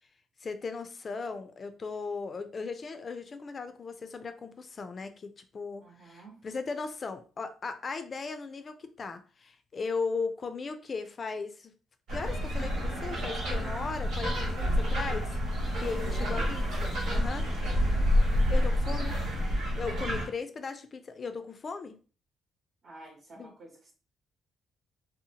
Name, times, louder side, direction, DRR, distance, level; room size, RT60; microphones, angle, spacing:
voice 1, 0.4-11.7 12.1-17.5 18.5-19.2 19.7-22.0 23.4-23.5, left 4 dB, 40° left, 0.4 m, -37 dB
voice 2, 5.8-6.4 16.0-16.6 22.8-23.9, right 2 dB, 55° right, 1.0 m, -48 dB
sound 1, 12.1-20.3, equal, 85° right, 1.4 m, -28 dB
2.8 x 2.1 x 2.8 m
cardioid pair, 90°, 0 cm